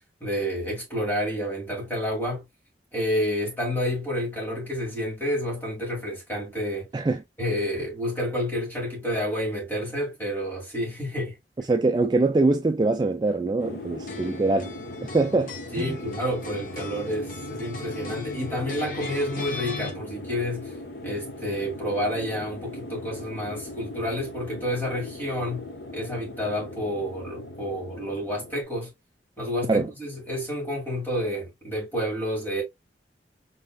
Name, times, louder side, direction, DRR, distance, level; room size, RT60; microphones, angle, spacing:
voice 1, 0.2-2.5 2.9-6.9 7.4-11.4 15.7-20.7 21.0-25.7 25.9-28.9 29.4-32.6, equal, 10° left, 2.4 m, -29 dB
voice 2, 11.6-14.7 15.0-16.0 29.7-29.9, right 3 dB, 25° right, 0.3 m, -23 dB
sound 1, 13.6-28.6, left 2 dB, 70° left, 0.9 m, -39 dB
sound 2, 14.1-19.9, left 4 dB, 50° left, 1.2 m, -38 dB
5.6 x 3.4 x 2.2 m
head